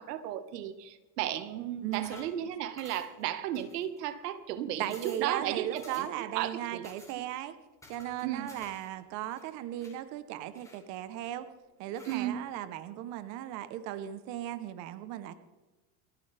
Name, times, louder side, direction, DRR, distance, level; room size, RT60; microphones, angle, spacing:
voice 1, 0.0-6.9 8.2-8.5 12.0-12.4, right 11 dB, 85° right, 10 dB, 1.6 m, -34 dB
voice 2, 1.8-2.1 4.8-7.5 7.9-11.5 11.8-15.3, right 12 dB, 40° right, 11 dB, 0.9 m, -37 dB
sound 1, 1.9-2.4 2.8-3.2 3.5-4.2 4.5-4.6 4.8-5.3 5.8-6.2 6.8-7.2 7.8-8.9 9.2-10.0 10.5-11.3 11.9-12.3, left 2 dB, 5° left, 3.1 m, -53 dB
29.0 x 10.0 x 3.4 m, 1.2 s
supercardioid pair, 165°, 47 cm